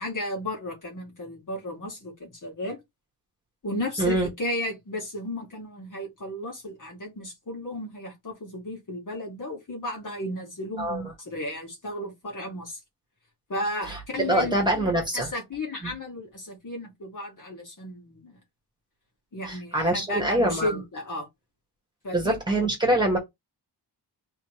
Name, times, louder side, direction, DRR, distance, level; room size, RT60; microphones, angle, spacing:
voice 1, 0.0-2.8 3.6-12.8 13.5-14.5 15.1-18.4 19.3-21.3 22.0-22.4, left 1 dB, 50° left, 2.5 m, -34 dB
voice 2, 4.0-4.3 10.8-11.0 13.9-15.3 15.8-15.9 19.5-20.7 22.1-23.2, right 1 dB, 10° right, 1.9 m, -24 dB
4.2 x 3.6 x 3.3 m
wide cardioid pair, 155°, 40 cm